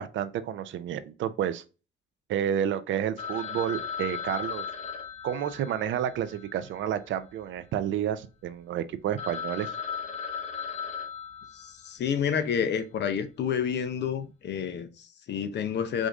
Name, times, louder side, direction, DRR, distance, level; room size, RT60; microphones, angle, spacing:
voice 1, 0.0-1.6 2.3-4.7 5.2-9.7, right 10 dB, 75° right, 0.6 m, -30 dB
Telephone, 3.2-7.5 7.8-7.9 8.4-8.5 8.9-9.0 9.2-12.1, left 6 dB, 35° left, 1.1 m, -37 dB
voice 2, 11.5-16.1, left 7 dB, 60° left, 0.7 m, -29 dB
4.9 x 2.6 x 3.6 m
cardioid pair, 90°, 20 cm